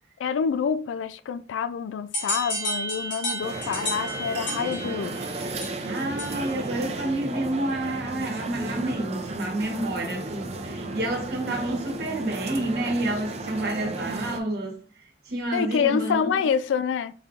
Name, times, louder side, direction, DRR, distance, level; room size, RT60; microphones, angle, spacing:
voice 1, 0.2-5.2 15.5-17.1, left 7 dB, 90° left, 0.3 m, -27 dB
sound 1, 2.1-6.6, equal, 70° left, 1.5 m, -32 dB
sound 2, 3.4-14.4, right 2 dB, 35° right, 0.5 m, -34 dB
voice 2, 5.9-14.8 15.2-16.5, right 1 dB, 60° right, 1.1 m, -29 dB
4.0 x 2.4 x 3.7 m
head